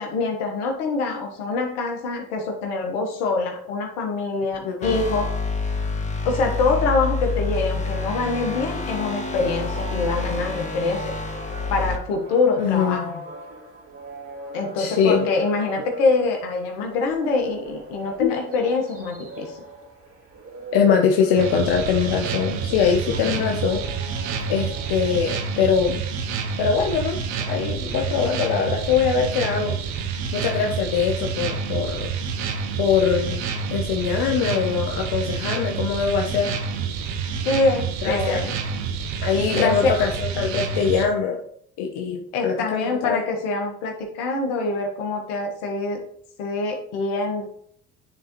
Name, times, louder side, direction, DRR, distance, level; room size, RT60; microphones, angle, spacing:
voice 1, 0.0-5.3 6.2-11.1 11.7-13.2 14.5-19.5 37.4-38.6 39.5-40.0 42.3-46.0 46.4-47.4, left 3 dB, 80° left, 3 dB, 1.5 m, -24 dB
voice 2, 4.6-5.0 12.6-13.1 14.8-15.3 18.2-18.3 20.7-23.8 24.5-26.0 26.6-27.2 27.5-29.8 30.3-32.1 32.8-33.4 33.7-36.6 38.0-38.4 39.2-41.4 41.8-43.2, left 7 dB, 65° left, 3 dB, 0.9 m, -22 dB
sound 1, 4.8-12.0, left 4 dB, 15° left, 1.4 m, -28 dB
sound 2, 8.7-25.8, right 2 dB, 30° right, 1.7 m, -40 dB
sound 3, 21.4-41.1, right 6 dB, 75° right, 1.0 m, -28 dB
9.8 x 3.9 x 3.0 m, 0.65 s
hypercardioid pair, 60°, 44 cm